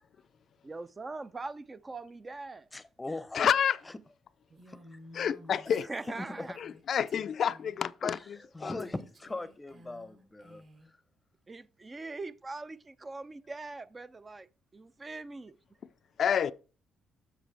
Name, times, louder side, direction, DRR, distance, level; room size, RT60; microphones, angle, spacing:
voice 1, 0.6-2.7 4.5-4.6 5.7-6.6 11.5-14.5 14.7-15.6, right 3 dB, 25° right, 0.4 m, -42 dB
voice 2, 2.7-3.5 4.7-5.0 5.7-6.5 8.0-10.6, left 2 dB, 15° left, 0.7 m, -40 dB
voice 3, 3.3-3.8 5.1-5.9 6.6-8.2 8.6-8.9 16.2-16.5, left 8 dB, 60° left, 0.4 m, -28 dB
Female speech woman speaking, 4.6-6.8 7.1-7.8 8.8-10.9, equal, 45° right, 3.0 m, -55 dB
7.4 x 7.3 x 3.3 m
cardioid pair, 90°, 0 cm